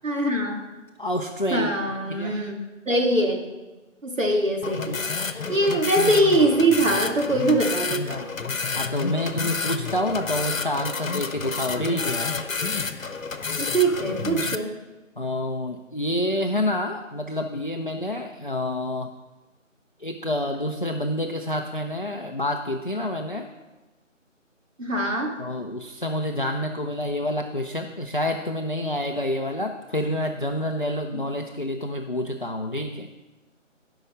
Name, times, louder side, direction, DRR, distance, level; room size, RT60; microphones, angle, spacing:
voice 1, 0.0-0.6 1.5-2.6 2.9-3.4 4.0-5.0 5.5-8.3 13.6-14.7 24.8-25.3 31.1-31.2, right 1 dB, 75° right, 1 dB, 2.2 m, -22 dB
voice 2, 1.0-2.4 8.7-12.3 15.2-19.1 20.0-23.5 25.4-33.1, left 1 dB, 40° left, 2 dB, 0.5 m, -28 dB
sound 1, 4.6-14.6, left 4 dB, 85° left, 0.9 m, -29 dB
11.5 x 5.6 x 6.5 m, 1.1 s
figure-of-eight pair, 170°, 39 cm